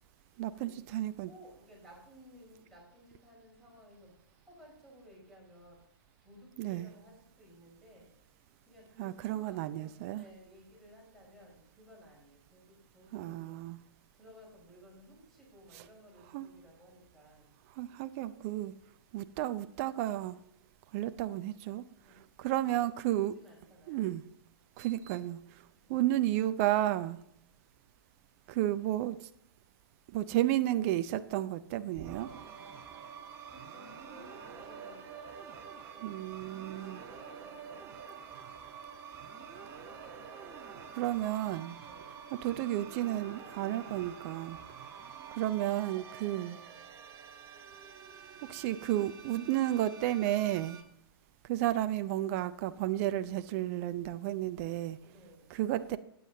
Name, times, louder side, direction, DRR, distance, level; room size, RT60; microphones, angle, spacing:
voice 1, 0.4-1.3 6.6-6.9 9.0-10.2 13.1-13.8 16.3-16.5 17.8-18.7 19.1-20.4 20.9-21.8 22.4-23.3 23.9-24.2 24.8-25.4 25.9-27.2 28.5-29.2 30.1-32.3 36.0-37.0 40.9-41.8 42.4-44.6 45.3-46.6 48.5-50.8 51.5-55.0 55.5-56.0, right 14 dB, 35° right, 12 dB, 0.5 m, -32 dB
voice 2, 1.1-8.1 8.6-13.8 14.1-17.6 22.0-24.1 33.5-35.1 36.7-37.7 41.8-42.3 55.0-55.6, equal, ahead, -3 dB, 4.7 m, -57 dB
sound 1, 31.9-50.8, right 6 dB, 20° right, 1.3 m, -48 dB
15.0 x 9.3 x 2.8 m, 0.74 s
figure-of-eight pair, 115°, 13 cm